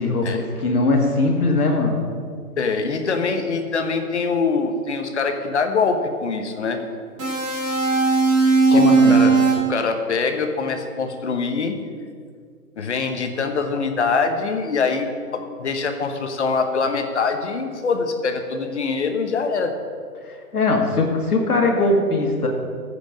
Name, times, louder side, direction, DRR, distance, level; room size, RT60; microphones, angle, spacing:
voice 1, 0.0-2.0 8.7-9.2 20.3-22.5, left 2 dB, 70° left, 2 dB, 2.2 m, -20 dB
voice 2, 2.6-6.8 8.7-8.8 9.1-11.8 12.8-19.7, left 4 dB, 45° left, 6 dB, 1.1 m, -24 dB
sound 1, 7.2-9.5, right 4 dB, 20° right, 2.4 m, -17 dB
14.5 x 5.2 x 5.2 m, 2.1 s
hypercardioid pair, 155°, 47 cm